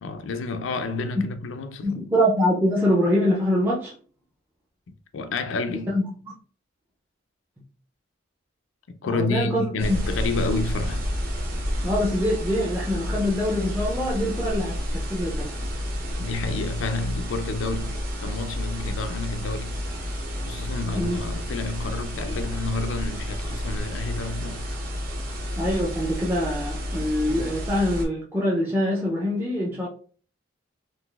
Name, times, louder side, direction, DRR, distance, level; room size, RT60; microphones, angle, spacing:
voice 1, 0.0-1.9 5.1-6.0 8.9-11.1 16.1-19.8 20.1-20.2 20.5-24.7, left 3 dB, 75° left, 0.4 m, -30 dB
voice 2, 1.8-3.9 5.9-6.3 9.1-9.7 11.8-15.5 20.9-21.2 25.6-29.9, equal, 10° right, 0.5 m, -24 dB
sound 1, 9.8-28.1, equal, 45° right, 0.8 m, -30 dB
3.8 x 2.4 x 2.3 m
head